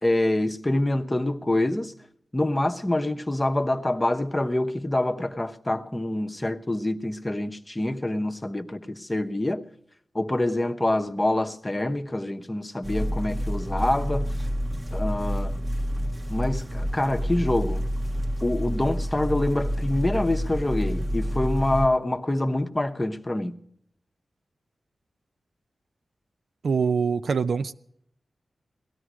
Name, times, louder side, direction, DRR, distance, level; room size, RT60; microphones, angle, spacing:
voice 1, 0.0-1.9 2.3-9.6 10.1-14.3 14.9-15.5 16.3-17.8 18.4-23.6, left 1 dB, 20° left, 1.0 m, -26 dB
sound 1, 12.8-21.9, equal, 30° right, 1.2 m, -28 dB
voice 2, 26.6-27.7, right 5 dB, 75° right, 0.6 m, -24 dB
18.0 x 13.0 x 6.2 m
wide cardioid pair, 75°, 0 cm